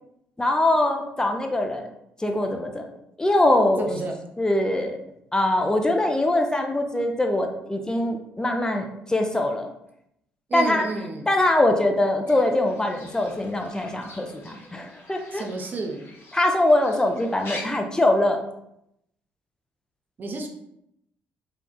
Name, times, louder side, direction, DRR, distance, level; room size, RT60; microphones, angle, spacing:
voice 1, 0.4-1.9 2.2-2.9 3.2-3.9 4.4-5.0 5.3-9.7 10.5-10.9 11.3-15.4 16.3-18.4, left 1 dB, 15° left, 3 dB, 0.4 m, -22 dB
voice 2, 3.8-4.2 10.5-11.3 15.3-16.0 20.2-20.5, right 3 dB, 35° right, 3 dB, 0.5 m, -30 dB
Fowl / Bird, 12.3-17.6, left 2 dB, 45° left, 0.7 m, -44 dB
3.6 x 2.3 x 2.2 m, 0.78 s
figure-of-eight pair, 50°, 6 cm